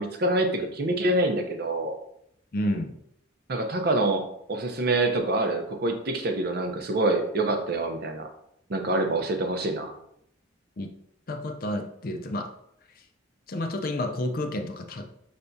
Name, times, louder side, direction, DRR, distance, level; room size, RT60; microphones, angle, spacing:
voice 1, 0.0-2.0 3.5-8.3 8.7-9.9, right 2 dB, 50° right, 5 dB, 0.6 m, -26 dB
voice 2, 2.5-3.0 10.8-10.9 11.3-12.5 13.5-15.1, left 1 dB, 50° left, 5 dB, 0.5 m, -30 dB
5.6 x 3.4 x 2.6 m, 0.74 s
head